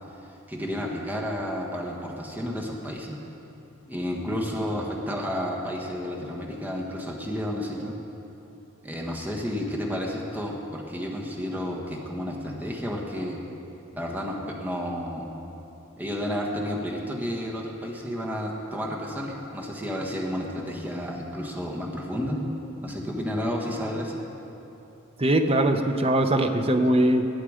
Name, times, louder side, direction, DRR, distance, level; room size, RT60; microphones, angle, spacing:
voice 1, 0.5-3.2 3.9-7.9 8.8-13.4 13.9-15.3 16.0-22.4 22.8-24.2, equal, 10° right, -2 dB, 1.4 m, -31 dB
voice 2, 25.2-27.3, right 1 dB, 30° right, 6 dB, 0.7 m, -21 dB
19.5 x 8.0 x 5.0 m, 2.9 s
head